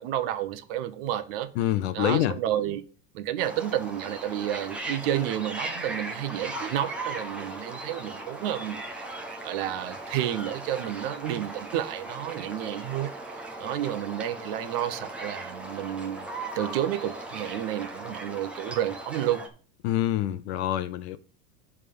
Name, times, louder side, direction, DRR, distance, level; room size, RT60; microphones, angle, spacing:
voice 1, 0.0-1.5 1.9-2.8 3.1-8.8 9.4-16.3 16.5-19.4, right 11 dB, 45° right, 0.9 m, -30 dB
voice 2, 1.6-2.4 19.8-21.2, left 12 dB, 55° left, 0.7 m, -26 dB
sound 1, 3.4-19.5, right 2 dB, 5° right, 0.4 m, -38 dB
10.5 x 3.6 x 6.9 m
supercardioid pair, 170°, 40 cm